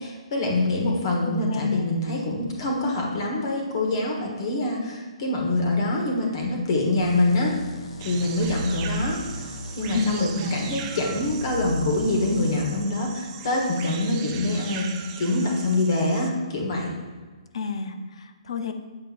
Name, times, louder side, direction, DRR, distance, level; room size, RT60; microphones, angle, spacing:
voice 1, 0.0-7.5 8.0-9.2 9.8-16.9, left 2 dB, 45° left, -1 dB, 1.3 m, -25 dB
voice 2, 1.2-1.9 9.9-10.6 17.5-18.7, left 5 dB, 60° left, 8 dB, 0.6 m, -30 dB
sound 1, 7.0-12.6, equal, 85° left, 1.4 m, -36 dB
sound 2, 8.0-16.3, right 8 dB, 20° right, 0.4 m, -40 dB
7.8 x 6.5 x 2.5 m, 1.4 s
hypercardioid pair, 165°, 3 cm